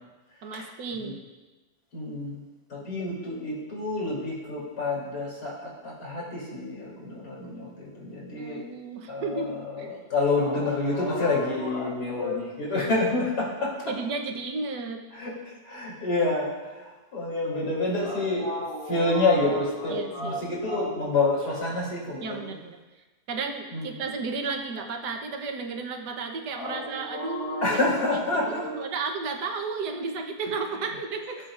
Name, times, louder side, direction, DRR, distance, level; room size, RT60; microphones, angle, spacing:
voice 1, 0.4-1.2 8.4-9.9 13.9-15.0 19.9-20.4 22.2-22.8 23.3-27.6 28.5-31.4, right 4 dB, 85° right, 4 dB, 1.6 m, -33 dB
voice 2, 1.9-2.4 2.7-8.6 9.1-13.9 15.1-22.5 23.7-24.0 26.5-28.8, left 2 dB, 80° left, -5 dB, 3.7 m, -28 dB
19.0 x 7.6 x 2.5 m, 1.2 s
omnidirectional pair, 1.7 m